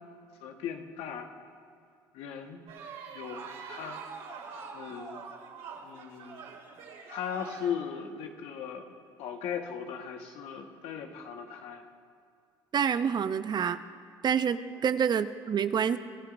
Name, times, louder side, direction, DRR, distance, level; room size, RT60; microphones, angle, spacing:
voice 1, 0.4-1.3 2.1-2.6 3.1-4.0 4.7-5.2 5.8-6.5 7.1-8.9 9.2-11.8 14.7-14.8, left 7 dB, 70° left, 4 dB, 1.5 m, -38 dB
sound 1, 2.7-7.7, right 5 dB, 70° right, 2.5 m, -44 dB
voice 2, 12.7-13.8 14.2-16.0, right 7 dB, 45° right, 12 dB, 0.7 m, -27 dB
25.5 x 15.0 x 2.7 m, 2.2 s
hypercardioid pair, 70°, 10 cm